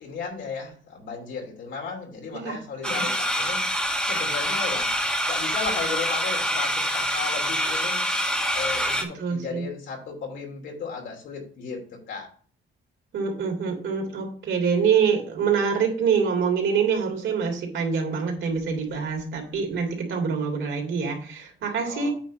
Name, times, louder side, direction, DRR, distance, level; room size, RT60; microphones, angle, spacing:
voice 1, 0.0-3.7 4.0-5.0 5.3-8.0 8.5-12.3 21.8-22.1, left 5 dB, 65° left, 0 dB, 3.0 m, -35 dB
voice 2, 2.3-3.0 9.1-9.7 13.1-22.1, right 6 dB, 65° right, 1 dB, 3.4 m, -25 dB
sound 1, 2.8-9.0, equal, 5° left, 1.5 m, -26 dB
9.0 x 3.9 x 6.3 m, 0.44 s
cardioid pair, 140°, 21 cm